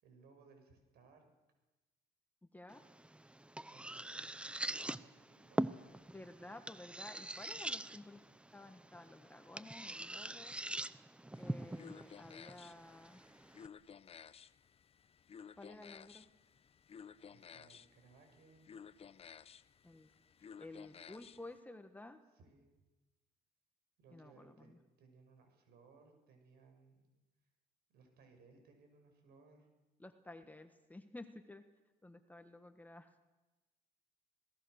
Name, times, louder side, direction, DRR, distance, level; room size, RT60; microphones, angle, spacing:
voice 1, 0.0-1.2 3.7-5.8 17.3-18.8 22.3-22.7 24.0-27.1 27.9-29.7, right 4 dB, 70° right, 5 dB, 6.3 m, -64 dB
sound 1, 2.7-13.7, right 1 dB, 5° right, 0.6 m, -44 dB
voice 2, 6.1-8.2 8.5-10.5 11.4-13.2 15.6-16.2 19.8-20.1 20.6-22.2 24.1-24.8 30.0-31.6 32.0-33.1, left 2 dB, 10° left, 7 dB, 1.5 m, -53 dB
sound 2, 11.3-21.6, left 7 dB, 35° left, 0.7 m, -56 dB
26.5 x 18.5 x 6.6 m, 1.1 s
cardioid pair, 110°, 17 cm